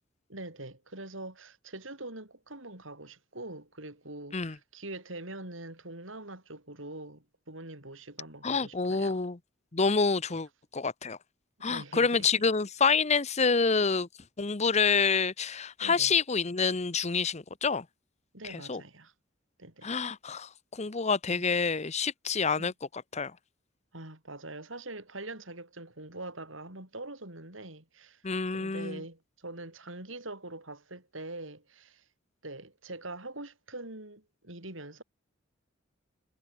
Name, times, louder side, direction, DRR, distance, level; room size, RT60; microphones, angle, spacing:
voice 1, 0.3-9.2 10.3-10.4 11.6-12.5 15.8-16.2 18.3-19.1 19.6-19.9 21.3-21.4 22.5-22.7 23.9-28.2 28.5-32.0 32.4-35.0, right 2 dB, 75° right, 7.6 m, -43 dB
voice 2, 8.4-9.4 9.7-10.5 10.7-11.2 11.6-14.1 14.4-17.8 18.4-18.8 19.8-22.7 23.1-23.3 28.2-29.0, left 5 dB, 35° left, 0.9 m, -27 dB
head